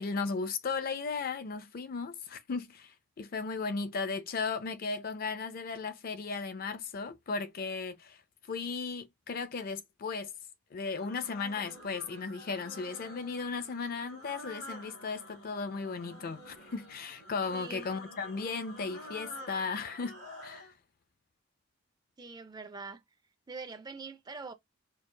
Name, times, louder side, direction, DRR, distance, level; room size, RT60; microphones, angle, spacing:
voice 1, 0.0-8.2 8.5-10.3 10.7-20.7, left 4 dB, 45° left, 0.4 m, -36 dB
sound 1, 10.8-20.7, left 1 dB, 90° left, 2.1 m, -49 dB
voice 2, 17.5-17.9 22.2-23.0 23.5-24.5, right 4 dB, 20° right, 0.3 m, -43 dB
4.6 x 2.3 x 2.2 m
head